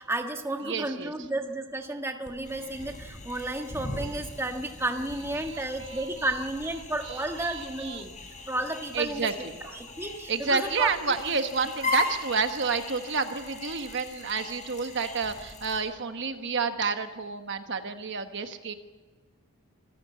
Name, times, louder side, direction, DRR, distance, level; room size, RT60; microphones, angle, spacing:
voice 1, 0.0-8.1 8.5-9.3 9.7-11.5, right 1 dB, 10° right, 4 dB, 1.5 m, -32 dB
voice 2, 0.6-1.1 5.4-6.1 7.0-8.1 8.9-9.8 10.3-18.7, right 5 dB, 55° right, 7 dB, 1.2 m, -30 dB
sound 1, 2.3-15.8, left 3 dB, 35° left, 5.0 m, -38 dB
26.5 x 15.5 x 8.3 m, 1.4 s
head